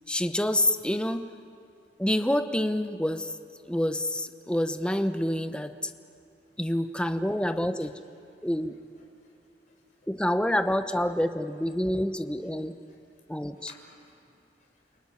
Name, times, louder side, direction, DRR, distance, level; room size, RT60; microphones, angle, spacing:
voice 1, 0.1-1.2 2.0-3.4 3.7-5.9 6.6-8.0 8.4-8.8 10.1-12.7 13.3-13.7, left 1 dB, 5° left, 8 dB, 0.9 m, -27 dB
voice 2, 9.7-10.1 12.9-13.0 13.6-15.0, left 3 dB, 45° left, -1 dB, 6.1 m, -57 dB
29.5 x 19.5 x 9.6 m, 2.5 s
head